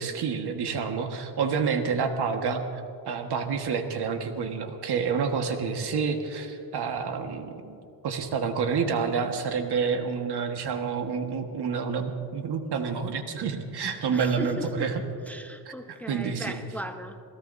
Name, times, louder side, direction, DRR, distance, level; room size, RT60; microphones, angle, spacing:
voice 1, 0.0-2.6 3.1-7.8 8.0-14.9 15.9-16.6, right 6 dB, 60° right, 5 dB, 1.6 m, -28 dB
voice 2, 14.1-14.9 15.2-17.2, equal, 5° left, 6 dB, 0.8 m, -37 dB
27.5 x 17.0 x 2.7 m, 2.6 s
cardioid pair, 100°, 44 cm